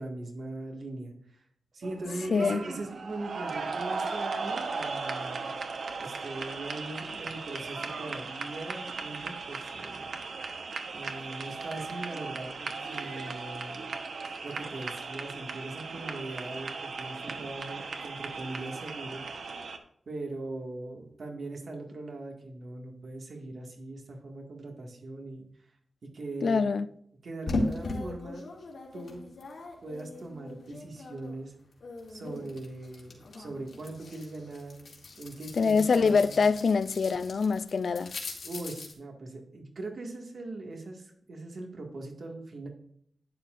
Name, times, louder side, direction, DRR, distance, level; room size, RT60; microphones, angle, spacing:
voice 1, 0.0-1.4 1.7-5.5 6.0-10.1 10.9-14.0 14.4-19.2 20.1-25.7 26.0-26.7 27.2-28.4 28.9-29.2 29.8-31.5 32.1-34.8 35.2-36.3 38.4-42.7, right 2 dB, 60° right, 1.9 m, -40 dB
sound 1, 1.8-19.8, right 4 dB, 85° right, 1.0 m, -37 dB
voice 2, 2.3-2.6 26.4-26.9 35.6-38.1, left 5 dB, 65° left, 0.4 m, -24 dB
sound 2, 27.5-31.4 31.7-38.9, left 2 dB, 85° left, 2.4 m, -39 dB
11.5 x 9.9 x 2.5 m
wide cardioid pair, 160°, 0 cm